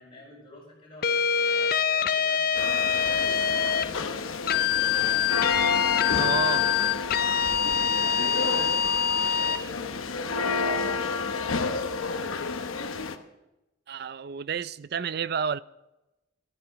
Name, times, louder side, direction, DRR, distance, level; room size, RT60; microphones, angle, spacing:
voice 1, 0.0-4.7 7.9-10.9, left 1 dB, 25° left, 5.7 m, -48 dB
sound 1, 1.0-3.9 4.5-9.6, left 7 dB, 45° left, 0.4 m, -25 dB
sound 2, 2.5-13.2, left 4 dB, 85° left, 0.9 m, -30 dB
voice 2, 6.2-6.7 13.9-15.6, right 6 dB, 50° right, 0.4 m, -30 dB
13.5 x 12.0 x 5.2 m
head